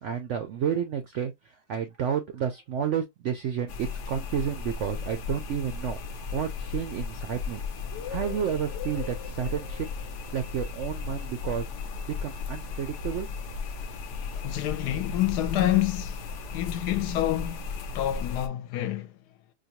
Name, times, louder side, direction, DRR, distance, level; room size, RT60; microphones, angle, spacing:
voice 1, 0.0-7.6 8.1-9.9 10.3-11.7 12.1-13.3, right 8 dB, 75° right, 0.6 m, -31 dB
sound 1, 3.7-18.5, left 5 dB, 60° left, 0.8 m, -35 dB
voice 2, 14.4-16.2 16.5-19.1, left 13 dB, 75° left, 1.1 m, -28 dB
4.9 x 2.3 x 2.9 m
omnidirectional pair, 1.8 m